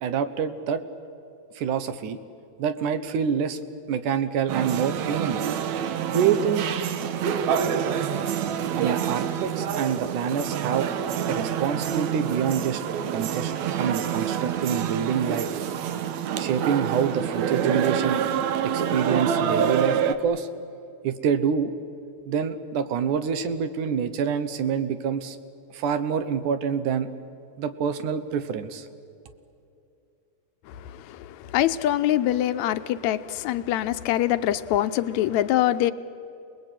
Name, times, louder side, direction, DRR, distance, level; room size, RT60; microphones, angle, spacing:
voice 1, 0.0-0.8 1.6-2.2 2.6-3.6 3.9-5.4 6.1-6.7 8.8-10.9 11.3-12.8 13.1-13.5 13.8-15.5 16.4-18.2 18.6-20.5 21.0-21.7 22.3-25.4 25.7-27.1 27.6-28.9, right 7 dB, 90° right, 10 dB, 2.7 m, -26 dB
sound 1, 4.5-20.2, right 8 dB, 75° right, 2.3 m, -27 dB
voice 2, 30.7-35.9, left 13 dB, 75° left, 12 dB, 2.0 m, -24 dB
28.0 x 20.5 x 9.1 m, 2.6 s
omnidirectional pair, 3.5 m